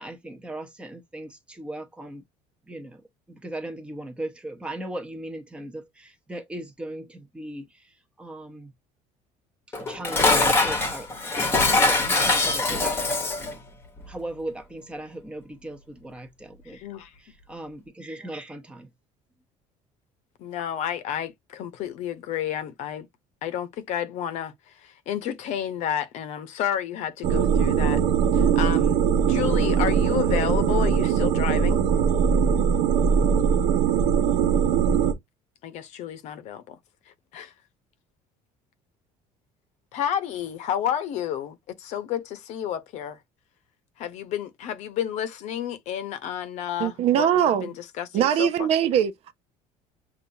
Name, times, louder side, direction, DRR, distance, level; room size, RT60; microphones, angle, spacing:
voice 1, 0.0-2.2 2.7-8.7 9.8-11.4 11.7-13.3 14.1-16.8 17.2-18.9, right 1 dB, 10° right, 0.9 m, -38 dB
Dishes pots and pans, 9.7-13.6, left 3 dB, 20° left, 1.1 m, -22 dB
voice 2, 16.7-17.1 20.4-23.1 23.4-28.0 28.3-29.0 29.3-31.8 35.6-36.8 37.3-37.5 39.9-43.2 44.0-48.7, left 10 dB, 55° left, 0.8 m, -31 dB
sound 1, 27.2-35.1, right 7 dB, 75° right, 1.0 m, -21 dB
voice 3, 46.8-47.7 48.1-49.3, right 10 dB, 50° right, 0.6 m, -22 dB
7.0 x 2.6 x 2.7 m
cardioid pair, 160°, 14 cm